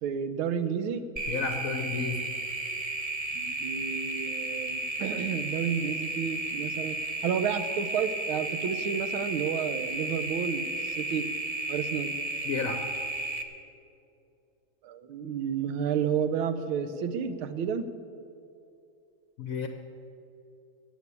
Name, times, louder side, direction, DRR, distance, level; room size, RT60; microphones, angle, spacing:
voice 1, 0.0-1.1 3.3-7.0 7.2-11.3 11.7-12.1 14.8-17.8, right 7 dB, 80° right, 11 dB, 1.6 m, -31 dB
sound 1, 1.2-13.4, right 2 dB, 45° right, 0.4 m, -33 dB
voice 2, 1.3-2.2 12.5-12.8 19.4-19.7, left 5 dB, 55° left, 6 dB, 1.0 m, -31 dB
15.5 x 8.4 x 8.3 m, 2.6 s
omnidirectional pair, 2.3 m